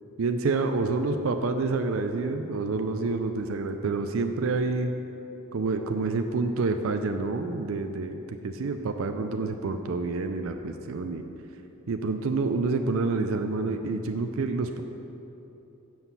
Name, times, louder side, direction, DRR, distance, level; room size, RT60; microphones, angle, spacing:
voice 1, 0.2-4.9 5.5-11.2 11.9-14.8, right 3 dB, 75° right, 6 dB, 0.5 m, -28 dB
7.8 x 5.7 x 7.0 m, 3.0 s
head